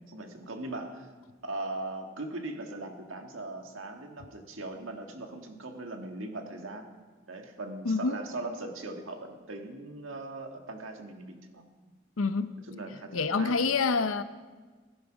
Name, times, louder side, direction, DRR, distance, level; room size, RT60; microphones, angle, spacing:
voice 1, 0.1-1.1 1.4-6.9 7.3-11.6 12.7-13.5, right 2 dB, 80° right, 4 dB, 1.7 m, -39 dB
voice 2, 7.8-8.2 12.2-12.6 13.1-14.2, left 4 dB, 90° left, 12 dB, 0.7 m, -27 dB
17.5 x 11.0 x 5.0 m, 1.4 s
head